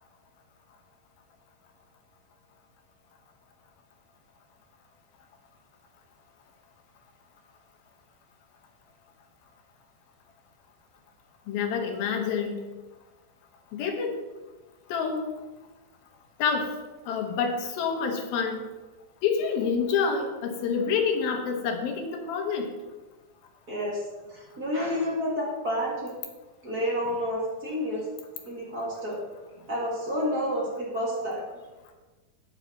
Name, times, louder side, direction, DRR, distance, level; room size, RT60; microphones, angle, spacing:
voice 1, 11.5-12.6 13.7-14.2 14.9-15.2 16.4-16.7 17.1-18.6 19.2-22.7, left 6 dB, 85° left, 3 dB, 3.2 m, -27 dB
voice 2, 23.7-24.0 24.3-26.1 26.6-28.1 28.5-29.2 29.7-31.4, equal, 30° right, -5 dB, 2.3 m, -29 dB
11.5 x 9.7 x 4.1 m, 1.2 s
omnidirectional pair, 4.2 m